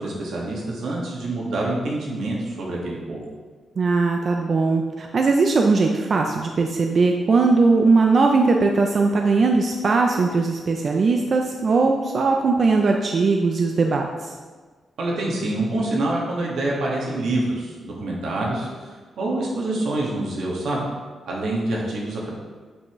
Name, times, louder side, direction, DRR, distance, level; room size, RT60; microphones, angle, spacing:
voice 1, 0.0-3.2 15.0-20.8 21.3-22.3, right 2 dB, 80° right, -3 dB, 1.8 m, -26 dB
voice 2, 3.8-14.3, right 3 dB, 45° right, 2 dB, 0.5 m, -19 dB
8.0 x 5.6 x 3.1 m, 1.4 s
wide cardioid pair, 145°, 0 cm